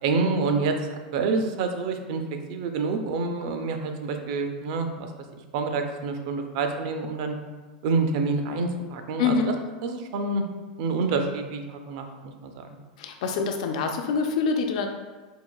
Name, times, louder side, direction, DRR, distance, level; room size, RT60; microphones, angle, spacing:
voice 1, 0.0-2.2 2.5-5.1 5.5-7.4 7.8-9.5 9.8-10.4 10.8-12.6, right 4 dB, 40° right, 5 dB, 0.4 m, -27 dB
voice 2, 9.2-9.5 13.0-14.9, left 5 dB, 50° left, 5 dB, 0.3 m, -25 dB
4.6 x 2.7 x 2.3 m, 1.3 s
supercardioid pair, 175°, 4 cm